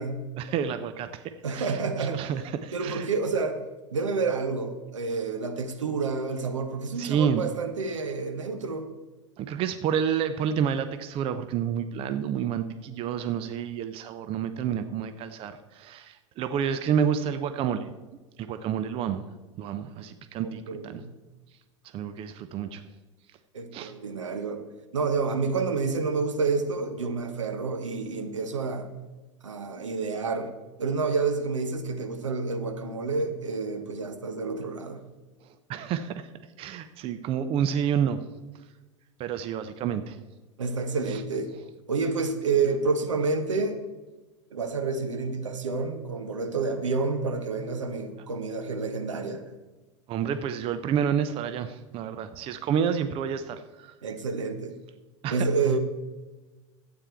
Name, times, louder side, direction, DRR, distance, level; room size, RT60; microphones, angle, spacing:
voice 1, 0.4-3.1 7.0-7.4 9.4-17.9 18.4-19.2 19.6-21.0 21.9-22.8 23.7-23.9 35.7-36.3 36.6-38.2 39.2-40.2 41.1-41.2 50.1-53.9 55.2-55.5, right 8 dB, 35° right, 11 dB, 0.7 m, -29 dB
voice 2, 1.4-2.3 2.7-3.6 3.9-8.9 20.4-21.1 23.5-24.7 24.9-28.9 29.4-30.5 30.8-35.0 40.6-41.5 41.9-43.8 44.5-49.4 54.0-54.8 55.3-55.8, right 4 dB, 80° right, 7 dB, 1.2 m, -29 dB
12.0 x 8.8 x 4.6 m, 1.2 s
figure-of-eight pair, 85°, 16 cm